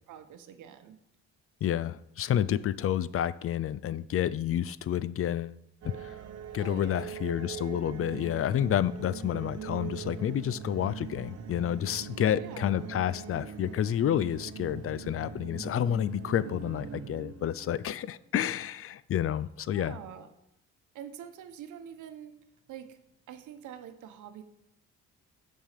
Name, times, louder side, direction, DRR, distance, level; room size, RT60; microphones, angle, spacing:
voice 1, 0.1-1.0 6.6-7.2 12.3-12.8 19.7-20.3 20.9-22.3 22.7-23.0 23.3-24.4, right 9 dB, 80° right, 1.0 m, -45 dB
voice 2, 1.6-5.6 5.8-6.1 6.5-19.9, left 10 dB, 50° left, 0.5 m, -29 dB
sound 1, 5.8-18.0, right 7 dB, 60° right, 1.1 m, -42 dB
7.3 x 5.5 x 6.7 m
cardioid pair, 90°, 30 cm